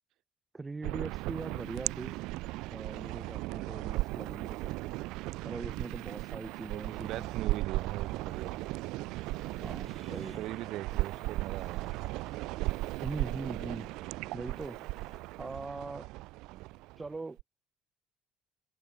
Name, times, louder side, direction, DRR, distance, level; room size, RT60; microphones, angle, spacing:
voice 1, 0.5-2.2 2.7-4.7 5.4-7.6 9.6-10.5 13.0-13.9 14.3-14.8 15.4-16.1 17.0-17.4, right 3 dB, 15° right, 2.0 m, -41 dB
sound 1, 0.8-17.4, right 20 dB, 85° right, 0.8 m, -36 dB
sound 2, 6.6-15.2, left 3 dB, 15° left, 3.0 m, -58 dB
voice 2, 6.7-8.8 10.4-12.1 16.5-16.7, right 15 dB, 60° right, 6.3 m, -41 dB
cardioid pair, 165°, 0 cm